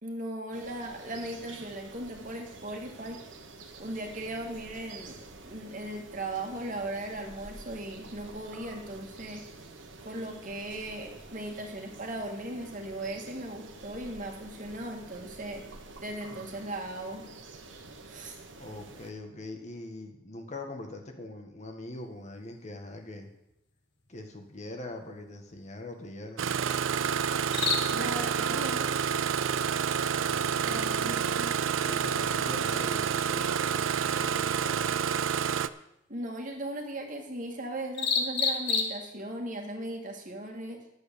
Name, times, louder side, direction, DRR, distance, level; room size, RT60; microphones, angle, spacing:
voice 1, 0.0-3.2 3.8-9.5 10.0-15.7 16.0-17.3 18.1-18.4 27.9-28.9 30.6-31.5 36.1-40.8, right 1 dB, 40° right, 2 dB, 2.0 m, -38 dB
sound 1, 0.5-19.1, right 3 dB, 70° right, 1.5 m, -48 dB
voice 2, 18.6-23.3 24.1-26.4 30.2-31.2 31.8-35.0, left 2 dB, 35° left, 4 dB, 1.5 m, -42 dB
sound 2, 21.9-39.4, left 5 dB, 60° left, 1.7 m, -38 dB
Engine starting, 26.4-35.7, right 7 dB, 85° right, 0.5 m, -28 dB
11.0 x 8.4 x 6.9 m, 0.83 s
head